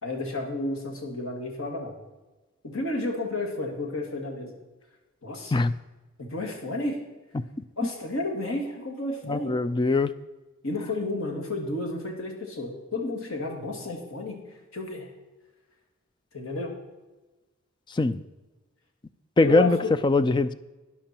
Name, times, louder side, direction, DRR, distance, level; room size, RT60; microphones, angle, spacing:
voice 1, 0.0-1.9 2.6-4.5 5.2-5.6 6.2-7.0 7.8-9.5 10.6-14.4 14.7-15.1 16.3-16.7 19.4-20.0, left 2 dB, 80° left, 2 dB, 2.3 m, -31 dB
voice 2, 9.3-10.1 18.0-18.2 19.4-19.8 20.0-20.5, left 2 dB, 20° left, 14 dB, 0.4 m, -21 dB
13.0 x 9.8 x 4.4 m, 1.1 s
head